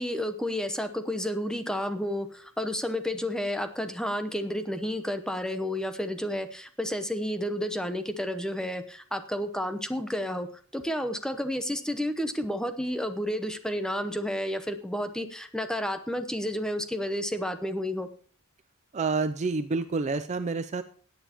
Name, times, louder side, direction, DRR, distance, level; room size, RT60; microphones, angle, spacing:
voice 1, 0.0-10.5 10.7-18.1, equal, 5° left, 8 dB, 0.8 m, -31 dB
voice 2, 18.9-20.8, right 4 dB, 35° right, 10 dB, 0.4 m, -28 dB
17.0 x 9.0 x 2.9 m, 0.43 s
head